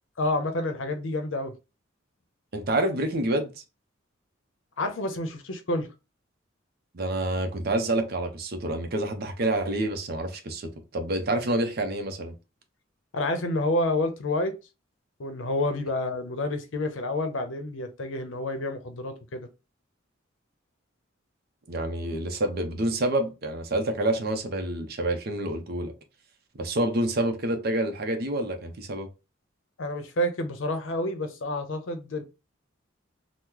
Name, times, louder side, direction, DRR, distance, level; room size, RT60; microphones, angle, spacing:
voice 1, 0.2-1.5 4.8-5.9 13.1-14.5 15.2-19.5 29.8-32.2, left 1 dB, 80° left, 0.6 m, -29 dB
voice 2, 2.5-3.5 6.9-12.3 21.7-25.9 26.5-29.1, right 1 dB, 50° right, 0.6 m, -28 dB
3.0 x 2.0 x 3.7 m
head